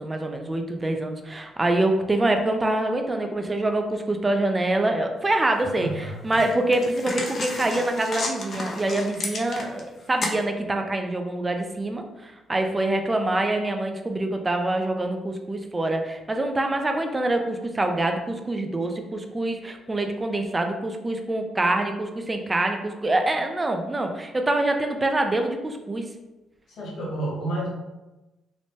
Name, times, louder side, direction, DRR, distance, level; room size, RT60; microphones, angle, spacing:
voice 1, 0.0-26.1, right 2 dB, 20° right, 5 dB, 0.4 m, -25 dB
sound 1, 5.4-5.5 6.3-9.9 10.2-10.4, left 2 dB, 50° left, 0.5 m, -32 dB
voice 2, 5.8-6.4 26.7-27.7, right 2 dB, 70° left, -4 dB, 1.1 m, -31 dB
3.1 x 2.1 x 2.7 m, 1.0 s
cardioid pair, 90°, 0 cm